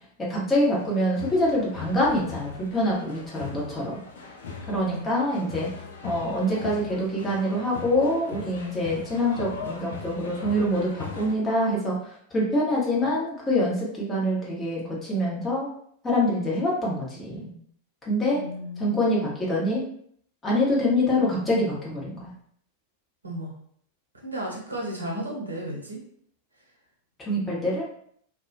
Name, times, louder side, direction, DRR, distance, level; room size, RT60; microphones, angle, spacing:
voice 1, 0.2-4.0 4.7-5.7 6.0-15.7 16.0-17.5 18.1-18.4 18.8-19.8 20.4-22.3 27.2-27.9, left 1 dB, 15° left, -5 dB, 0.9 m, -25 dB
sound 1, 0.7-11.3, left 5 dB, 65° left, 0.4 m, -40 dB
voice 2, 4.8-5.1 18.3-19.1 23.2-23.5 24.2-26.0, equal, 80° right, -3 dB, 0.7 m, -34 dB
2.2 x 2.2 x 2.6 m, 0.64 s
figure-of-eight pair, 90°, 0 cm